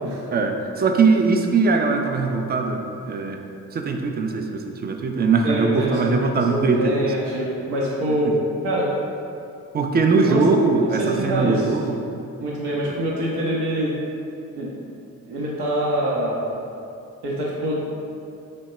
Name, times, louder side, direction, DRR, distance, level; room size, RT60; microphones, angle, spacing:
voice 1, 0.3-3.4 3.7-6.9 9.7-12.0 12.9-13.0, right 4 dB, 25° right, 4 dB, 0.4 m, -21 dB
voice 2, 5.4-8.4 8.6-8.9 10.2-10.4 10.8-11.7 12.4-13.9 14.5-14.7 15.3-16.6 17.2-17.8, right 1 dB, 70° right, -5 dB, 0.8 m, -25 dB
3.5 x 2.2 x 4.0 m, 2.6 s
hypercardioid pair, 45°, 41 cm